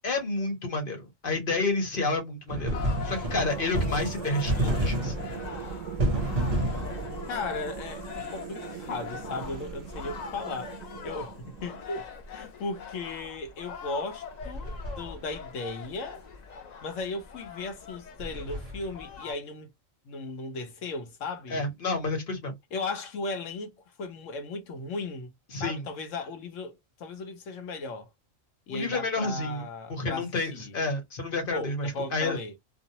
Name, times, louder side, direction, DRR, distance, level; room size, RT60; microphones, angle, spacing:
voice 1, 0.0-2.8 3.0-5.1 21.5-22.5 25.5-25.8 28.7-29.6 29.9-32.4, left 2 dB, 45° left, 1.1 m, -30 dB
sound 1, 2.5-7.8 9.4-10.4 14.4-15.5 18.2-19.2, right 1 dB, 45° right, 0.9 m, -31 dB
sound 2, 2.7-19.3, left 5 dB, 90° left, 0.3 m, -42 dB
sound 3, 2.8-12.1, right 10 dB, 85° right, 1.0 m, -41 dB
voice 2, 7.3-16.2 16.8-19.7 20.0-21.7 22.7-25.3 25.6-28.1 28.7-30.7 31.5-32.6, left 3 dB, 75° left, 1.1 m, -36 dB
2.6 x 2.0 x 2.7 m
omnidirectional pair, 1.4 m